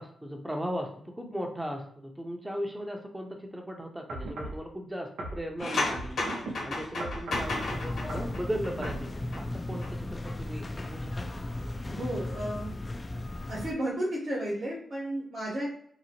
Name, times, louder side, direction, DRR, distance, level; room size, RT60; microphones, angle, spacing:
voice 1, 0.0-6.2 6.7-9.1 9.4-11.3, equal, 15° right, 2 dB, 0.7 m, -37 dB
sound 1, 4.1-4.6 5.2-6.5 7.0-7.5 8.0-8.3 8.8-9.0 9.7-9.8, right 2 dB, 85° right, 0.6 m, -37 dB
sound 2, 5.6-9.4 9.7-9.9, left 2 dB, 75° left, 1.2 m, -33 dB
sound 3, 7.3-13.7, left 2 dB, 30° left, 0.3 m, -36 dB
voice 2, 11.9-12.7 13.5-15.7, right 1 dB, 55° right, -5 dB, 1.0 m, -33 dB
2.8 x 2.1 x 2.8 m, 0.64 s
supercardioid pair, 50°, 0 cm